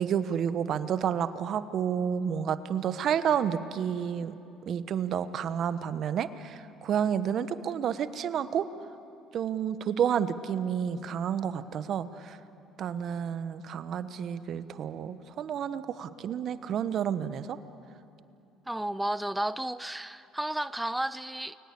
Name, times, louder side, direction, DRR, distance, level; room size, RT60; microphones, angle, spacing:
voice 1, 0.0-4.3 4.7-8.7 9.3-12.4 12.8-17.6, right 8 dB, 55° right, 1.2 m, -30 dB
voice 2, 18.7-21.6, right 1 dB, 5° right, 0.5 m, -32 dB
29.5 x 23.0 x 8.5 m
hypercardioid pair, 70°, 0 cm